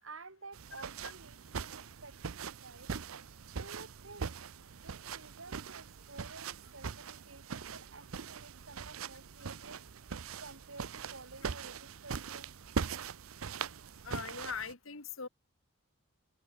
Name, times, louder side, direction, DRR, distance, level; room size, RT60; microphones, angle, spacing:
voice 1, 0.0-2.9 3.5-4.4 4.8-9.8 10.4-12.6, right 3 dB, 65° right, 3.7 m, -52 dB
sound 1, 0.5-14.7, right 6 dB, 80° right, 0.7 m, -42 dB
voice 2, 14.0-15.3, left 5 dB, 70° left, 2.3 m, -41 dB
head